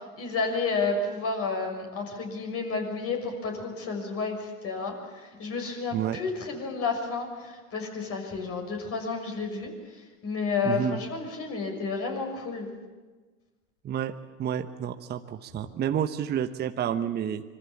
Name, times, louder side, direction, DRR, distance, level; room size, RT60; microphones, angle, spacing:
voice 1, 0.0-9.7 10.2-12.7, left 4 dB, 30° left, 3 dB, 6.4 m, -31 dB
voice 2, 10.6-11.0 13.8-14.1 14.4-17.4, right 9 dB, 25° right, 8 dB, 1.1 m, -29 dB
26.0 x 23.0 x 7.3 m, 1.3 s
hypercardioid pair, 105°, 43 cm